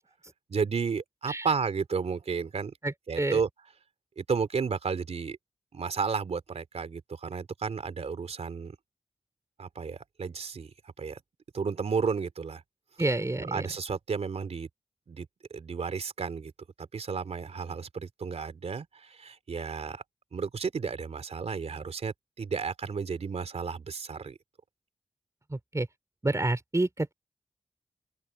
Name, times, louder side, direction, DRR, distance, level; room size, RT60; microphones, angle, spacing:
voice 1, 0.5-2.7 3.1-3.5 4.2-5.4 5.7-8.8 9.6-10.7 11.0-11.2 11.5-12.6 13.5-14.7 15.1-16.5 16.8-20.0 20.3-24.4, right 5 dB, 75° right, 3.5 m, -32 dB
voice 2, 2.8-3.4 13.0-13.7 25.5-25.9 26.2-27.1, right 2 dB, 30° right, 3.8 m, -29 dB
open air
cardioid pair, 40°, 11 cm